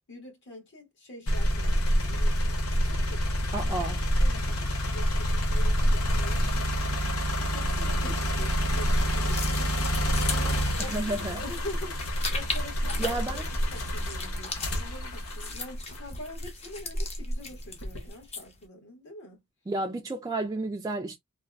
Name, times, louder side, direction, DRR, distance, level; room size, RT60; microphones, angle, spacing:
voice 1, 0.1-6.4 7.4-13.4 13.7-19.4, left 1 dB, 60° left, 1.6 m, -45 dB
sound 1, 1.3-16.3 16.9-18.1, equal, 90° left, 0.8 m, -27 dB
voice 2, 3.5-4.0 10.8-11.4 13.0-13.5 19.7-21.2, right 2 dB, 15° right, 0.3 m, -31 dB
sound 2, 9.2-18.6, left 4 dB, 30° left, 0.6 m, -39 dB
3.4 x 2.3 x 2.2 m
head